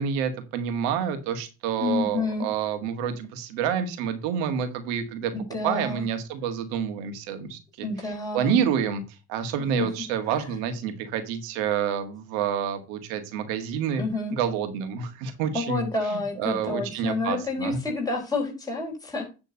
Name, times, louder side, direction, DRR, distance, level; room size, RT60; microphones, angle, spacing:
voice 1, 0.0-5.3 5.6-7.9 8.3-9.0 9.3-14.0 14.3-15.8 16.1-17.8, right 8 dB, 85° right, 8 dB, 1.7 m, -28 dB
voice 2, 1.8-2.5 5.3-6.0 7.8-8.6 9.8-9.9 10.3-10.4 14.0-14.3 15.5-19.4, left 3 dB, 10° left, -2 dB, 4.1 m, -29 dB
9.9 x 3.7 x 6.6 m, 0.30 s
supercardioid pair, 70°, 42 cm